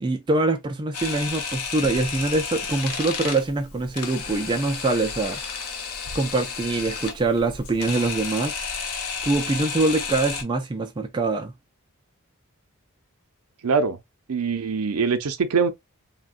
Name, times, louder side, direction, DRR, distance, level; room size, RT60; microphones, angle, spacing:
voice 1, 0.0-5.4 6.1-8.6 9.2-11.5, right 2 dB, 20° right, 0.3 m, -24 dB
Camera, 0.9-10.4, left 5 dB, 75° left, 0.7 m, -32 dB
voice 2, 13.6-14.0 14.3-15.7, right 5 dB, 75° right, 0.5 m, -23 dB
3.5 x 2.2 x 2.4 m
head